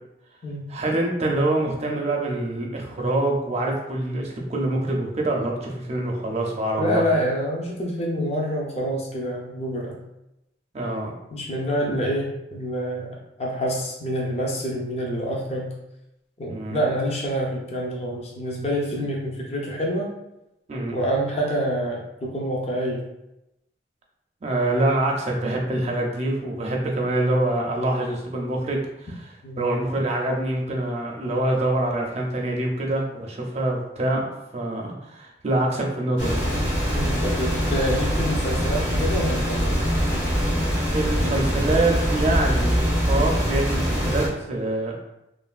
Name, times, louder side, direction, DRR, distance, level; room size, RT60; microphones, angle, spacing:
voice 1, 0.7-7.2 10.7-11.1 16.5-16.8 19.0-19.1 20.7-21.0 24.4-29.2 29.6-36.4 40.9-42.8 43.1-44.9, right 1 dB, 40° right, -1 dB, 0.4 m, -25 dB
voice 2, 6.8-10.0 11.3-15.7 16.4-20.1 20.9-23.0 29.4-29.7 36.9-39.8, equal, 35° left, -2 dB, 0.5 m, -27 dB
sound 1, 36.2-44.3, equal, 70° left, 1.5 m, -23 dB
3.2 x 2.2 x 2.3 m, 0.87 s
head